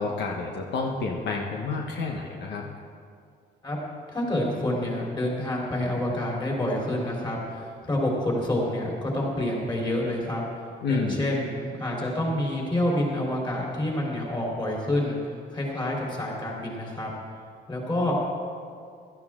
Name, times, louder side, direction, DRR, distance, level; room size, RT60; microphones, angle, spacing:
voice 1, 0.0-2.6 10.8-11.2, left 4 dB, 75° left, 0 dB, 1.2 m, -29 dB
voice 2, 4.1-10.4 10.9-15.2 15.5-17.1 17.7-18.1, left 1 dB, 25° left, -3 dB, 3.9 m, -28 dB
16.5 x 13.0 x 3.8 m, 2.2 s
cardioid pair, 115°, 18 cm